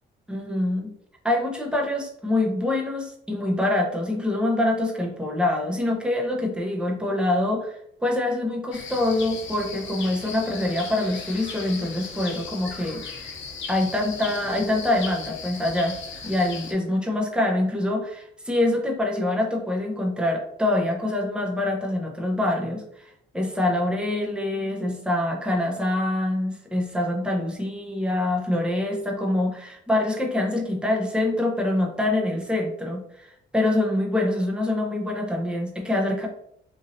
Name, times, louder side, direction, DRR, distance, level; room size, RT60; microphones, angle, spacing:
voice 1, 0.3-0.9 1.2-13.4 13.7-36.3, left 1 dB, 5° right, 0 dB, 0.7 m, -25 dB
sound 1, 8.7-16.7, left 5 dB, 70° left, 0.7 m, -37 dB
2.9 x 2.6 x 2.6 m, 0.72 s
cardioid pair, 90°, 20 cm